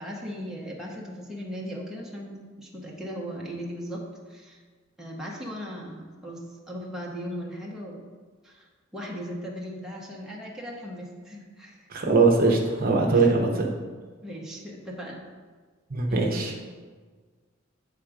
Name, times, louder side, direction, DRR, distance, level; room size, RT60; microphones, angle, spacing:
voice 1, 0.0-4.6 5.0-6.4 6.7-8.0 8.4-8.7 8.9-11.9 13.1-13.3 14.2-15.2 16.1-16.4, equal, ahead, -4 dB, 1.0 m, -37 dB
voice 2, 11.9-13.7 15.9-16.5, right 3 dB, 50° right, 1 dB, 0.8 m, -21 dB
8.3 x 3.6 x 5.0 m, 1.5 s
head